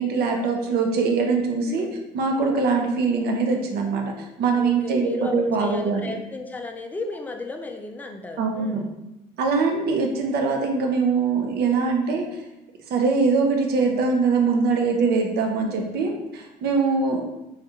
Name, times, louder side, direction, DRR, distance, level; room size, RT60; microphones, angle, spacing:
voice 1, 0.0-1.9 2.1-6.0 8.4-8.8 9.4-12.3 12.9-17.2, right 4 dB, 65° right, 2 dB, 0.6 m, -22 dB
voice 2, 1.7-2.0 4.5-8.9 15.6-15.9, left 3 dB, 10° left, 3 dB, 0.3 m, -35 dB
3.4 x 2.4 x 2.8 m, 0.94 s
supercardioid pair, 90°, 18 cm